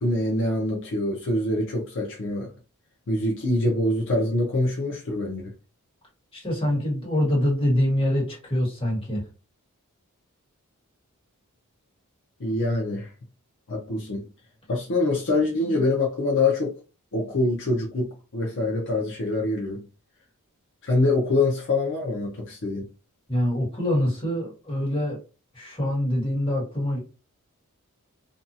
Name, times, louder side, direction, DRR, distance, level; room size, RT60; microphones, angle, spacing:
voice 1, 0.0-2.5 3.1-5.5 12.4-13.1 13.7-14.2 14.7-16.8 17.1-19.8 20.8-22.8, left 2 dB, 60° left, 0.6 m, -25 dB
voice 2, 6.3-9.2 23.3-25.2 25.5-27.0, left 1 dB, 25° left, 1.4 m, -25 dB
2.6 x 2.3 x 2.7 m
head